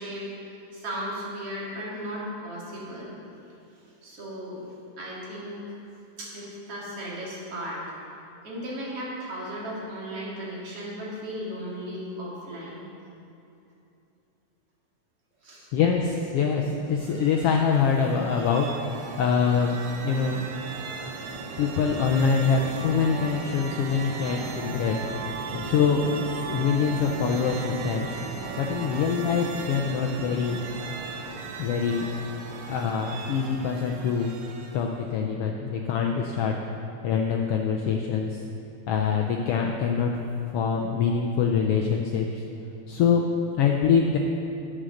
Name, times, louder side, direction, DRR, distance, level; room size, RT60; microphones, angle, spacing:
voice 1, 0.0-3.1 3.8-5.8 6.2-7.8 8.4-12.9 15.4-15.7, equal, 55° right, -6 dB, 3.3 m, -36 dB
voice 2, 15.7-19.8 20.0-20.4 21.6-25.0 25.5-28.2 28.6-30.7 31.6-32.1 32.7-34.3 34.7-36.6 37.0-38.4 38.9-40.2 40.5-42.4 42.9-43.2 43.6-44.2, left 6 dB, 80° left, 1 dB, 1.3 m, -24 dB
sound 1, 16.9-35.1, right 4 dB, 70° right, 1.3 m, -37 dB
10.0 x 7.7 x 6.5 m, 2.7 s
omnidirectional pair, 3.3 m